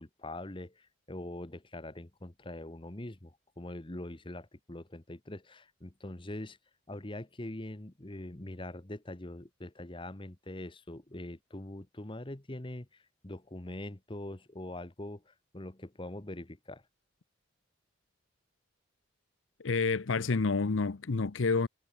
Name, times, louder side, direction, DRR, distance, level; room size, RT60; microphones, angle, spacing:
voice 1, 0.0-6.6 6.9-16.8, left 1 dB, 25° left, 1.2 m, -43 dB
voice 2, 19.6-21.7, left 4 dB, 80° left, 0.7 m, -29 dB
head